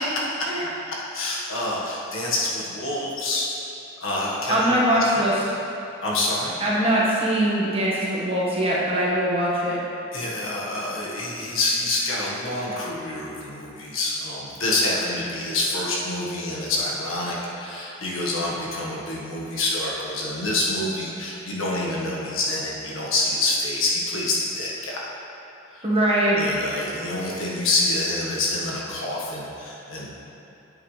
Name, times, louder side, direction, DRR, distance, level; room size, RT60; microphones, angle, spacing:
voice 1, 0.9-5.3 6.0-6.5 10.1-25.0 25.7-25.8 26.3-30.1, left 2 dB, 80° left, -5 dB, 1.6 m, -27 dB
voice 2, 4.5-5.3 6.6-9.8 25.8-26.4, right 1 dB, 25° right, -7 dB, 1.5 m, -22 dB
9.4 x 8.3 x 3.3 m, 2.9 s
head